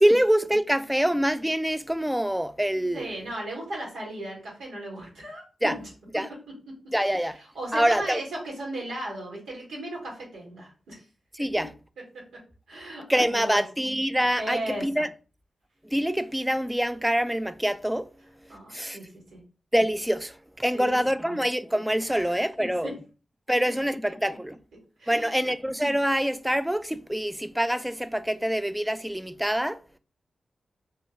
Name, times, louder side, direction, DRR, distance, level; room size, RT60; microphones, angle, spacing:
voice 1, 0.0-3.1 5.6-5.7 6.1-6.3 6.9-7.4 7.7-8.2 11.3-11.7 13.1-15.1 15.8-18.1 18.7-19.0 19.7-22.9 23.5-24.6 25.1-29.8, equal, 5° right, 0.3 m, -25 dB
voice 2, 2.9-5.7 6.1-6.2 6.7-6.8 7.1-11.0 11.4-11.5 12.1-12.2 12.7-13.6 14.4-14.9 18.5-19.0 19.3-19.4 20.7-21.4 22.1-22.4 22.8-22.9 25.0-25.4, right 1 dB, 85° right, 1.6 m, -36 dB
3.4 x 2.2 x 3.0 m
supercardioid pair, 40°, 0 cm